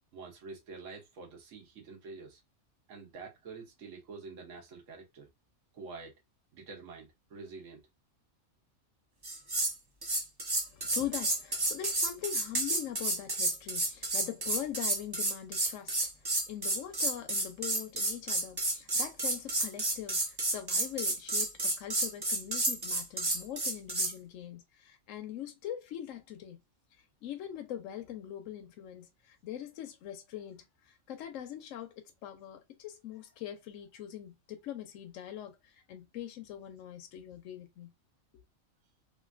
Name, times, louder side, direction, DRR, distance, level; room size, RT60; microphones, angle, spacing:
voice 1, 0.1-2.4 2.9-5.3 5.7-6.1 6.5-7.8, right 4 dB, 65° right, 1.3 m, -47 dB
sound 1, 9.2-9.7 10.0-24.1, right 2 dB, 30° right, 0.5 m, -31 dB
voice 2, 10.6-26.6 27.2-31.9 32.2-37.9, left 11 dB, 75° left, 0.9 m, -42 dB
3.1 x 2.6 x 2.4 m
omnidirectional pair, 1.4 m